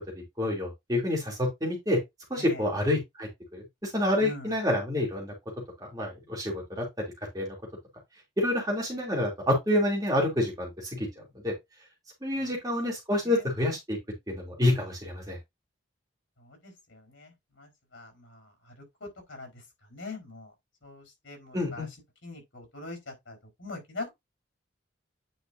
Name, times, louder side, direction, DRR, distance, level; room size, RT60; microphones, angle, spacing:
voice 1, 0.0-2.0 2.3-5.3 5.8-6.8 7.3-7.6 8.4-11.1 11.4-11.5 12.2-14.0 14.3-15.4 21.5-21.9, left 1 dB, 20° right, 2.9 m, -28 dB
voice 2, 4.2-4.5 12.4-12.7 13.2-13.5 16.4-18.7 19.0-19.6 19.9-20.5 20.8-21.9 22.2-24.1, left 2 dB, 80° left, 4.4 m, -43 dB
9.2 x 4.9 x 2.6 m
head